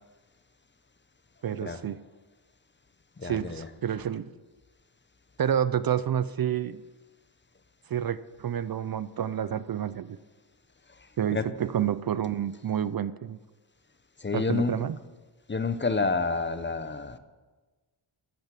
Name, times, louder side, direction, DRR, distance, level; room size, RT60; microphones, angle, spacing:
voice 1, 1.4-2.0 3.2-4.3 5.4-6.8 7.9-10.2 11.2-13.4 14.3-15.0, right 9 dB, 50° right, 15 dB, 0.5 m, -29 dB
voice 2, 3.2-3.7 11.3-11.5 14.2-14.7 15.5-17.2, left 4 dB, 25° left, 11 dB, 0.7 m, -28 dB
14.0 x 9.0 x 7.6 m, 1.3 s
wide cardioid pair, 145°, 48 cm